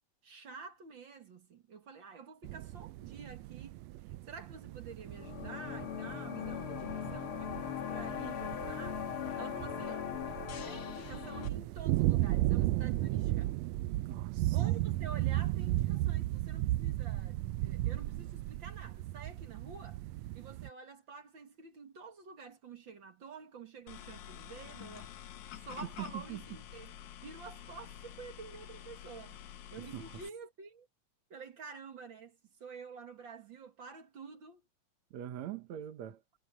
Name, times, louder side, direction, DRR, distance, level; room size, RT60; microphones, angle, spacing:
voice 1, 0.2-3.8 4.3-9.1 9.4-10.1 10.7-13.5 14.5-20.0 20.3-25.1 25.5-26.9 27.2-29.3 29.7-30.9 31.3-34.6, right 5 dB, 45° right, 2.3 m, -49 dB
sound 1, 2.4-20.7, right 16 dB, 85° right, 1.5 m, -35 dB
sound 2, 5.1-11.5, left 9 dB, 50° left, 2.0 m, -39 dB
voice 2, 14.0-14.6 26.1-26.4 29.8-30.2 35.1-36.2, right 11 dB, 65° right, 2.4 m, -43 dB
sound 3, 23.9-30.3, left 10 dB, 70° left, 2.6 m, -49 dB
omnidirectional pair, 3.5 m